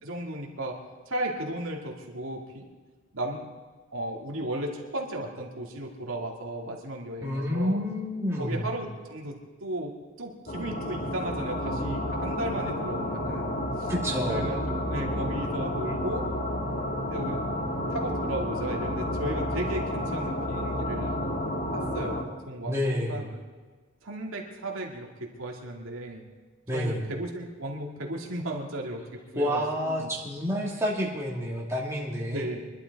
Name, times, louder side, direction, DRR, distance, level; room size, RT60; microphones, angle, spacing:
voice 1, 0.0-2.7 3.1-3.5 3.9-7.8 8.4-13.9 14.3-16.3 17.1-17.4 17.9-21.1 21.7-23.4 24.0-26.2 26.7-30.1 32.3-32.6, right 1 dB, 75° right, 0 dB, 2.4 m, -35 dB
voice 2, 7.2-8.7 13.9-14.6 22.7-23.3 26.7-27.1 29.4-32.5, equal, 15° right, -4 dB, 2.4 m, -29 dB
sound 1, 10.5-22.2, left 1 dB, 45° left, 2.0 m, -30 dB
24.0 x 12.0 x 4.1 m, 1.4 s
head